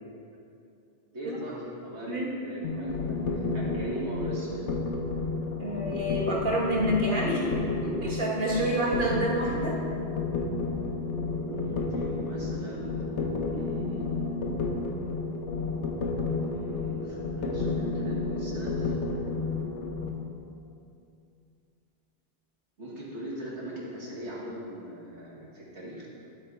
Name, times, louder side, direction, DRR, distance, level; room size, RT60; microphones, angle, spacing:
voice 1, 1.1-4.7 11.4-14.1 16.4-19.3 22.8-26.1, equal, 75° right, -6 dB, 2.2 m, -40 dB
sound 1, 2.6-20.1, left 3 dB, 85° left, 1.1 m, -31 dB
voice 2, 5.6-7.5 7.8-9.8, equal, 50° right, -4 dB, 1.6 m, -28 dB
12.0 x 4.2 x 4.6 m, 2.6 s
omnidirectional pair, 1.2 m